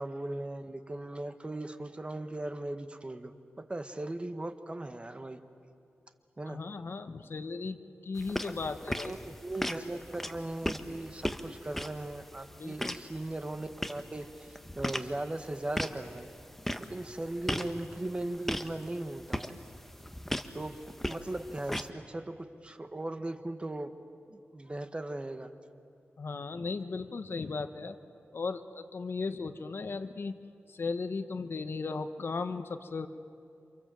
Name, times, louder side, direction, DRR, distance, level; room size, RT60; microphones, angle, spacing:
voice 1, 0.0-5.4 6.4-6.6 9.0-14.5 14.7-16.3 16.8-19.6 20.5-20.8 21.0-23.9 24.3-25.5, right 1 dB, 25° right, 8 dB, 1.4 m, -38 dB
voice 2, 6.5-9.1 12.5-13.0 26.2-28.0 28.3-30.4 30.7-33.1, left 4 dB, 60° left, 9 dB, 1.2 m, -36 dB
sound 1, 8.2-21.9, equal, 5° left, 1.1 m, -38 dB
29.0 x 27.0 x 7.7 m, 2.5 s
wide cardioid pair, 90°, 4 cm